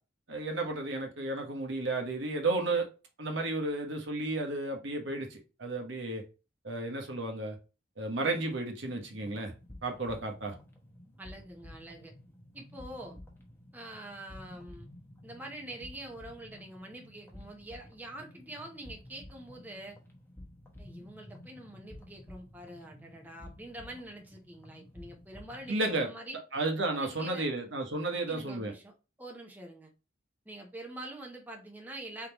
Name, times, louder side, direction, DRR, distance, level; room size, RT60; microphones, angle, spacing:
voice 1, 0.3-2.9 3.2-6.2 6.6-7.6 8.0-9.5 9.8-10.5 25.7-26.1 26.5-28.7, right 2 dB, 60° right, 1.2 m, -33 dB
sound 1, 8.8-25.7, left 1 dB, 10° left, 1.1 m, -52 dB
voice 2, 11.2-12.1 12.5-13.2 13.7-14.9 15.2-20.0 20.8-26.4 26.9-27.5 28.3-28.9 29.2-29.9 30.5-32.3, right 1 dB, 10° right, 0.8 m, -45 dB
4.6 x 3.7 x 2.9 m
head